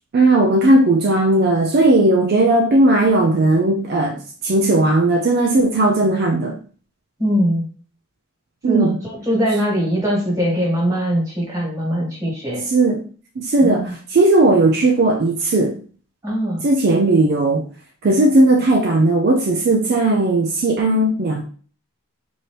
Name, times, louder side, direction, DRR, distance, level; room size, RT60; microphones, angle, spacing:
voice 1, 0.1-6.6 8.6-9.0 12.7-13.0 13.4-15.8 16.6-17.6 18.0-21.4, right 2 dB, 50° right, 2 dB, 0.4 m, -16 dB
voice 2, 7.2-7.7 8.7-12.7 13.6-13.9 16.2-16.7, equal, 15° right, -3 dB, 1.7 m, -21 dB
4.3 x 2.7 x 3.2 m, 0.43 s
head